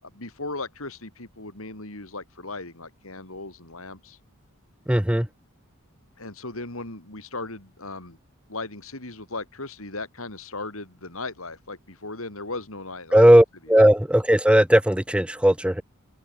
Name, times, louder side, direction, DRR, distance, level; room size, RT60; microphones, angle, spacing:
voice 1, 0.0-4.2 6.2-8.2 8.5-13.3 13.6-13.7, left 2 dB, 65° left, 4.4 m, -37 dB
voice 2, 4.9-5.3 13.1-15.8, right 1 dB, 5° right, 1.0 m, -17 dB
head